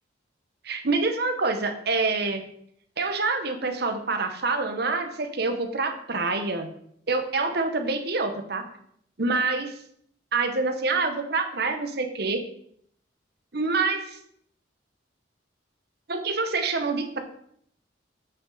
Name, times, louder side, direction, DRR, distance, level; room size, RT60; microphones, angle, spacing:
voice 1, 0.6-2.4 3.0-6.7 7.1-8.6 9.2-9.7 10.3-12.4 13.5-14.2 16.1-17.2, right 3 dB, 55° right, 6 dB, 1.1 m, -26 dB
8.1 x 6.0 x 4.1 m, 0.66 s
head